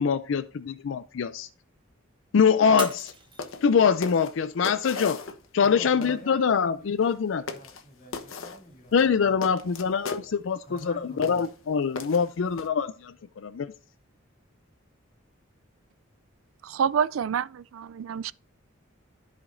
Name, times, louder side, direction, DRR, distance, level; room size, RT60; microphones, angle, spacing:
voice 1, 0.0-1.5 2.3-3.1 3.6-5.2 5.5-7.4 8.9-13.1 13.4-13.7, left 6 dB, 65° left, 0.4 m, -24 dB
Shatter, 2.8-4.1 4.6-5.0 5.6-5.7, right 5 dB, 25° right, 1.0 m, -39 dB
sound 1, 3.0-3.1 3.4-3.7 4.0-5.7 6.0-6.2 7.0-7.1 7.5-7.8 8.1-8.6 8.9-10.3 10.8-10.9 11.2-11.5 12.0-12.7, left 4 dB, 85° left, 1.2 m, -37 dB
voice 2, 5.6-9.3 10.7-11.5, right 1 dB, 40° left, 2.7 m, -47 dB
voice 3, 16.6-18.3, right 7 dB, 80° right, 0.4 m, -27 dB
14.0 x 5.0 x 2.6 m
head